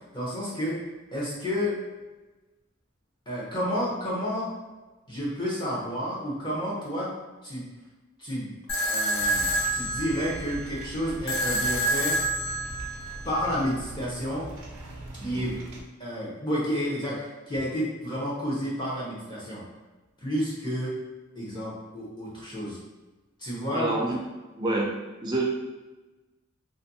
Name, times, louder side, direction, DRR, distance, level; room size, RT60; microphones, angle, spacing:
voice 1, 0.1-0.8 1.1-1.8 3.3-4.5 5.1-7.1 7.4-7.7 8.2-8.6 8.9-12.2 13.2-14.5 15.2-15.5 16.0-19.6 20.2-20.9 21.4-22.8 23.4-23.9, equal, 20° left, -7 dB, 0.7 m, -30 dB
sound 1, 8.7-13.7, right 1 dB, 65° left, 0.6 m, -28 dB
sound 2, 9.2-15.8, right 1 dB, 90° right, 0.5 m, -41 dB
voice 2, 15.2-15.6 23.7-24.2 24.6-24.9 25.2-25.4, right 2 dB, 20° right, -3 dB, 0.4 m, -27 dB
2.6 x 2.5 x 2.6 m, 1.2 s
head